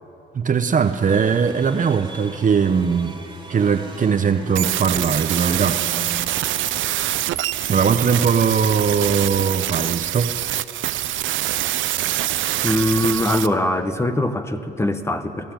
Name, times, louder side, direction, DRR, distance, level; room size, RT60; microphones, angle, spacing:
voice 1, 0.3-3.2 3.5-5.8 7.7-10.4, right 6 dB, 40° right, 0.9 m, -20 dB
sound 1, 0.8-7.8, right 3 dB, 20° right, 2.2 m, -40 dB
sound 2, 4.6-13.5, right 13 dB, 75° right, 0.6 m, -25 dB
voice 2, 12.6-15.5, left 1 dB, 15° left, 1.2 m, -22 dB
20.5 x 14.0 x 9.1 m
cardioid pair, 90°, 20 cm